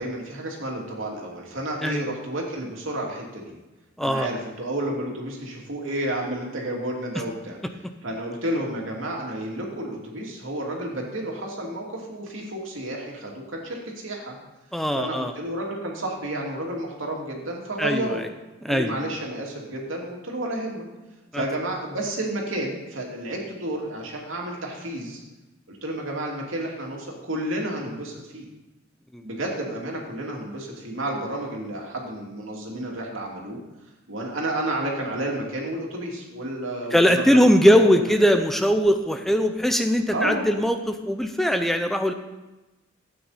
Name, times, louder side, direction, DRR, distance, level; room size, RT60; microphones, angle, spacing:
voice 1, 0.0-3.5 4.0-7.6 8.0-14.4 14.9-18.2 18.7-20.9 21.3-25.2 25.7-28.5 29.2-33.6 34.1-37.4 37.7-38.1 40.1-40.5, right 1 dB, 80° right, -1 dB, 2.7 m, -31 dB
voice 2, 4.0-4.3 14.7-15.3 17.8-18.3 18.6-19.0 21.3-21.4 29.1-29.3 36.9-42.1, equal, ahead, 6 dB, 0.6 m, -20 dB
13.0 x 8.7 x 4.2 m, 1.1 s
head